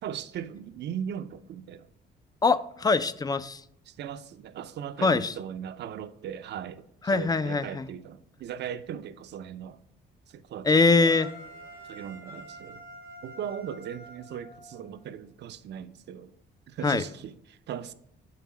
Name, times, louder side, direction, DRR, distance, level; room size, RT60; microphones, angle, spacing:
voice 1, 0.0-1.9 3.9-9.8 10.3-10.9 11.9-12.8 13.2-16.3 16.7-17.9, right 9 dB, 60° right, 0.5 m, -38 dB
voice 2, 2.4-3.6 5.0-5.3 7.1-7.9 10.7-11.3 16.8-17.0, left 4 dB, 20° left, 0.3 m, -23 dB
sound 1, 11.0-15.1, right 1 dB, 50° left, 1.6 m, -46 dB
5.8 x 4.0 x 6.0 m
cardioid pair, 90°, 20 cm